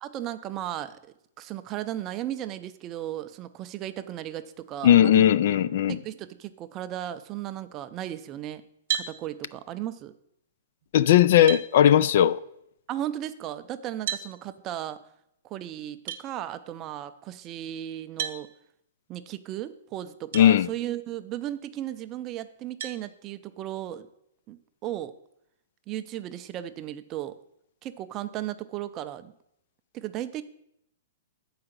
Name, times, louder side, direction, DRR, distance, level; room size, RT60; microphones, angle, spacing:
voice 1, 0.0-1.0 1.4-5.3 5.9-8.6 8.9-10.1 12.9-15.0 15.4-18.5 19.1-24.1 24.5-25.1 25.9-27.4 27.8-29.3 29.9-30.4, right 12 dB, 25° right, 0.4 m, -35 dB
voice 2, 4.8-6.0 10.9-12.4 20.3-20.7, left 11 dB, 55° left, 0.3 m, -18 dB
sound 1, 8.9-9.2 10.8-10.9 11.5-11.7 14.1-14.3 16.1-16.2 18.2-18.4 20.3-20.5 21.1-21.2 22.8-23.0, right 9 dB, 60° right, 1.0 m, -31 dB
7.8 x 4.8 x 6.6 m
hypercardioid pair, 155°, 0 cm